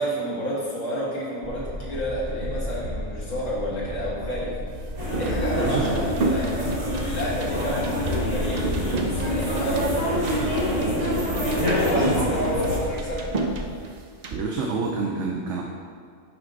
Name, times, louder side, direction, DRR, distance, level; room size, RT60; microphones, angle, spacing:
voice 1, 0.0-4.6 5.1-9.9 10.3-13.3, equal, 75° left, -9 dB, 2.0 m, -30 dB
sound 1, 1.4-13.6, equal, 20° left, 0.6 m, -35 dB
sound 2, 4.7-14.4, right 3 dB, 55° right, 0.4 m, -33 dB
sound 3, 5.0-12.8, left 1 dB, 35° right, 1.6 m, -26 dB
voice 2, 5.5-5.9 9.5-10.1 11.0-11.2 11.9-12.5 14.3-15.6, right 4 dB, 75° right, -1 dB, 0.9 m, -29 dB
5.7 x 5.2 x 3.9 m, 2.2 s
omnidirectional pair, 1.3 m